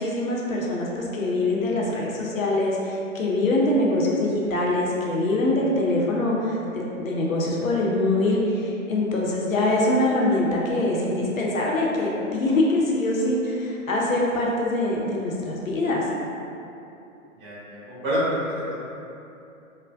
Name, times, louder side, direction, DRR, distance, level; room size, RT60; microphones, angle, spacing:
voice 1, 0.0-16.0, left 2 dB, 80° left, -3 dB, 0.7 m, -24 dB
voice 2, 17.3-18.8, equal, 35° right, -10 dB, 1.3 m, -27 dB
3.2 x 2.1 x 2.5 m, 2.7 s
figure-of-eight pair, 120°, 40 cm